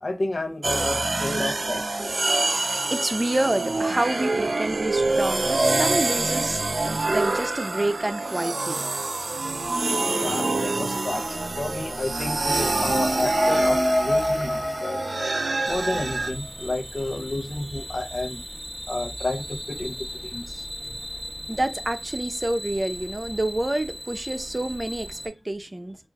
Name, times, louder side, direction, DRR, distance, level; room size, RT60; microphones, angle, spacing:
voice 1, 0.0-2.2 10.1-15.0 15.7-18.4 18.9-20.0 20.2-20.6, left 2 dB, 75° left, 0.7 m, -31 dB
sound 1, 0.6-16.3, right 3 dB, 85° right, 0.3 m, -26 dB
voice 2, 2.6-8.9 20.8-20.9 21.5-26.0, right 1 dB, 40° right, 0.6 m, -28 dB
sound 2, 11.1-16.2, left 1 dB, 45° left, 0.8 m, -27 dB
sound 3, 15.6-25.3, left 1 dB, 10° left, 1.2 m, -37 dB
6.0 x 2.5 x 2.3 m
wide cardioid pair, 50°, 0 cm